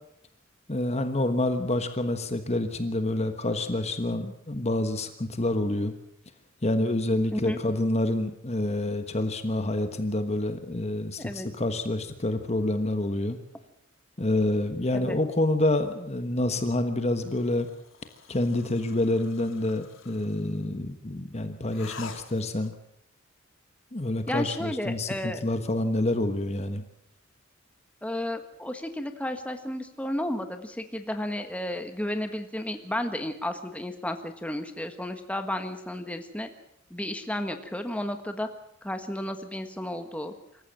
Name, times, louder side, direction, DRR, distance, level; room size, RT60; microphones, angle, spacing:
voice 1, 0.7-5.9 6.6-13.4 14.2-17.7 18.3-22.7 23.9-26.8, left 1 dB, 30° left, 8 dB, 1.3 m, -27 dB
voice 2, 11.2-11.5 14.9-15.2 24.3-25.4 28.0-36.5 36.9-38.5 38.8-40.3, left 1 dB, 5° left, 6 dB, 1.5 m, -32 dB
sound 1, 17.2-20.6 21.7-22.8, left 5 dB, 70° left, 2.2 m, -47 dB
25.5 x 14.5 x 7.6 m, 0.74 s
head